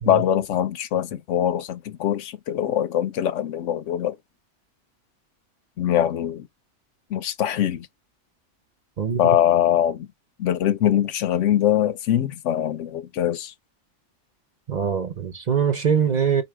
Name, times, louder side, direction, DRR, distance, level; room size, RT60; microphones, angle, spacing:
voice 1, 0.1-4.2 5.8-6.5 7.1-7.9 9.2-10.1 10.4-13.5, left 11 dB, 80° left, 0.9 m, -22 dB
voice 2, 14.7-16.4, right 7 dB, 40° right, 0.8 m, -23 dB
4.1 x 2.7 x 4.6 m
omnidirectional pair, 1.2 m